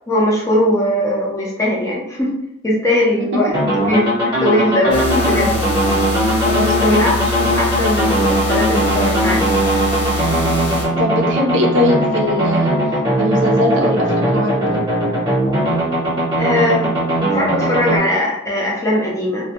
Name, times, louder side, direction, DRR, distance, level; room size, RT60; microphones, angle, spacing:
voice 1, 0.1-2.3 2.6-3.5 3.9-4.1 4.4-5.5 6.8-9.5 16.4-17.0 17.3-19.5, left 1 dB, 15° left, -3 dB, 0.5 m, -19 dB
sound 1, 3.5-18.0, right 1 dB, 25° right, 0.9 m, -19 dB
sound 2, 4.9-10.9, left 2 dB, 60° left, 0.8 m, -23 dB
voice 2, 6.4-7.2 11.0-12.8 13.2-14.8, left 1 dB, 75° right, 1 dB, 0.4 m, -20 dB
2.2 x 2.1 x 2.8 m, 0.77 s
head